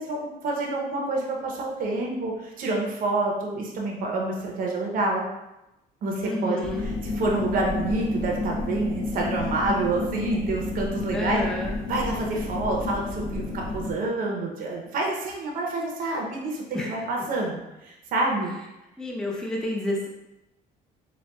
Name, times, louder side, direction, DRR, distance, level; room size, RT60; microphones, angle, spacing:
voice 1, 0.0-5.2 6.0-11.4 11.9-18.5, right 2 dB, 55° right, -1 dB, 0.6 m, -28 dB
voice 2, 6.2-6.9 11.1-11.7 16.7-16.9 19.0-20.1, left 2 dB, 5° left, -2 dB, 0.5 m, -29 dB
sound 1, 6.6-13.9, left 3 dB, 60° left, 0.8 m, -30 dB
4.0 x 2.2 x 2.2 m, 0.93 s
cardioid pair, 110°, 17 cm